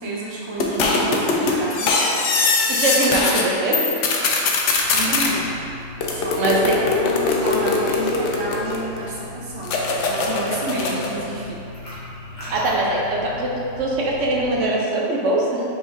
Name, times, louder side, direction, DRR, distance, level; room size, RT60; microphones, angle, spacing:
voice 1, 0.0-2.1 4.9-5.6 6.0-11.6, right 1 dB, 30° right, -5 dB, 0.5 m, -30 dB
sound 1, 0.6-3.5 3.7-5.3 6.0-9.0 9.6-11.2, left 3 dB, 75° left, 0.9 m, -21 dB
voice 2, 2.8-3.9 6.4-6.8 12.5-13.5 13.8-15.6, right 2 dB, 75° right, -3 dB, 1.0 m, -21 dB
sound 2, 4.7-14.7, left 2 dB, 40° left, 1.4 m, -38 dB
5.0 x 3.9 x 2.6 m, 2.7 s
omnidirectional pair, 1.3 m